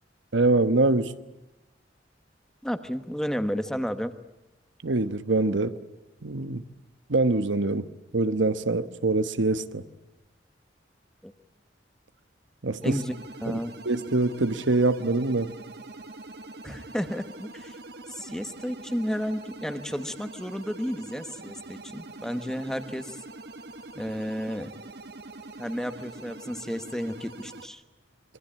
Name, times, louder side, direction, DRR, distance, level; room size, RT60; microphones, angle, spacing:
voice 1, 0.3-1.1 4.8-5.8 6.2-6.6 7.1-7.9 8.1-9.8 12.6-13.0 13.5-13.6 13.8-15.5, right 2 dB, 85° right, 1.1 m, -24 dB
voice 2, 2.6-4.1 11.2-11.3 12.8-13.8 16.6-17.8 18.1-23.2 23.9-24.7 25.6-27.8, equal, 5° left, 1.1 m, -32 dB
sound 1, 12.8-27.7, right 2 dB, 60° right, 1.3 m, -44 dB
26.0 x 23.0 x 8.6 m
head